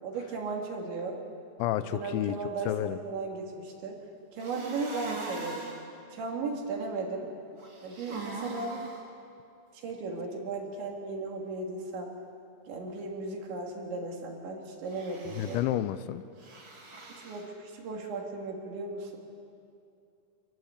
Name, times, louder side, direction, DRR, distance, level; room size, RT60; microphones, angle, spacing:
voice 1, 0.0-1.2 1.9-4.0 4.3-5.7 6.1-7.3 7.8-8.9 9.7-12.1 12.7-15.6 17.1-19.2, right 3 dB, 75° right, 0 dB, 5.0 m, -36 dB
voice 2, 1.6-2.4 2.7-3.0 15.4-16.2, left 12 dB, 85° left, 13 dB, 3.1 m, -30 dB
sound 1, 4.4-5.8 7.6-9.0 14.9-15.6 16.4-17.4, right 2 dB, 30° right, 2.9 m, -41 dB
26.0 x 18.5 x 8.4 m, 2.6 s
omnidirectional pair, 5.2 m